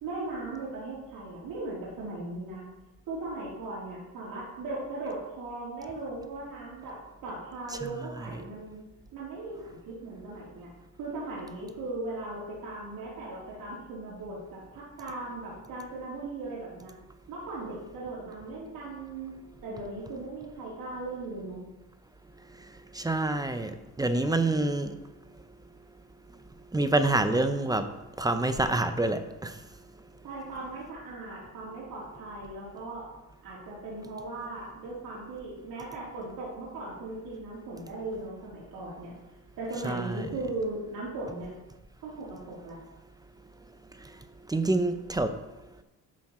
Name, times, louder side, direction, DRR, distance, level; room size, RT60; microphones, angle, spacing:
voice 1, 0.0-2.6 3.1-7.0 7.2-8.8 9.1-10.7 11.0-16.9 17.3-19.4 19.6-21.6 30.2-33.0 33.4-39.1 39.6-41.5 42.0-42.8, right 2 dB, 80° right, -6 dB, 3.7 m, -38 dB
voice 2, 22.9-24.9 26.7-27.9 28.2-29.5 39.8-40.3 44.5-45.3, right 2 dB, 10° right, 9 dB, 0.6 m, -27 dB
11.0 x 7.5 x 4.3 m, 1.0 s
cardioid pair, 130°, 34 cm